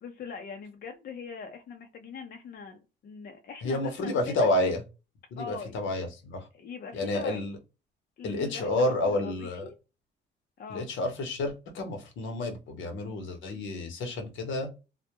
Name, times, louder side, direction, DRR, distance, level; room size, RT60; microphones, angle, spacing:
voice 1, 0.0-4.5 5.4-5.8 6.5-7.4 8.2-9.7 10.6-10.8, left 5 dB, 50° left, 4 dB, 0.5 m, -42 dB
voice 2, 3.6-4.8 5.3-6.5 6.9-7.6 8.2-9.7 10.7-14.7, left 2 dB, 75° left, 6 dB, 0.8 m, -30 dB
2.2 x 2.0 x 2.8 m, 0.29 s
cardioid pair, 90°, 20 cm